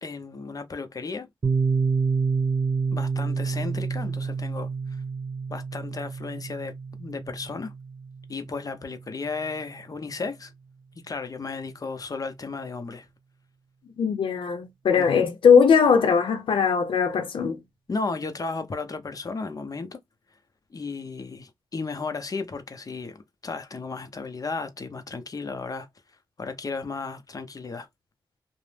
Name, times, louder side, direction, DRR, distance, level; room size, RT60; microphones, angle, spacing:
voice 1, 0.0-1.3 2.9-4.7 5.5-7.7 8.3-10.5 11.0-13.1 14.9-15.4 17.9-20.0 20.7-25.9 26.4-27.9, left 4 dB, 45° left, 0.7 m, -34 dB
Piano, 1.4-8.9, right 5 dB, 40° right, 0.7 m, -28 dB
voice 2, 14.0-17.6, left 6 dB, 85° left, 0.6 m, -20 dB
2.6 x 2.0 x 3.2 m
cardioid pair, 70°, 9 cm